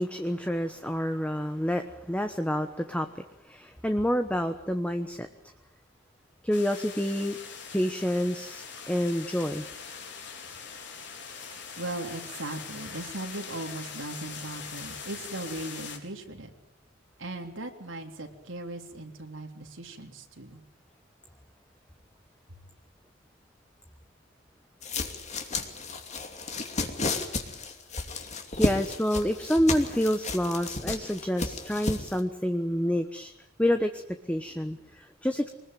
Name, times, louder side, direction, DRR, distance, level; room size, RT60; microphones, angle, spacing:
voice 1, 0.0-5.3 6.4-7.4 7.7-9.6 28.6-33.3 33.6-34.0 34.3-35.5, equal, 5° left, 7 dB, 1.2 m, -28 dB
sound 1, 6.5-16.0, left 6 dB, 65° left, 4.3 m, -42 dB
voice 2, 11.8-16.5 17.2-20.6, right 2 dB, 85° right, 2 dB, 3.5 m, -38 dB
sound 2, 24.8-32.2, left 3 dB, 35° left, 2.7 m, -33 dB
24.5 x 20.5 x 9.3 m, 0.77 s
head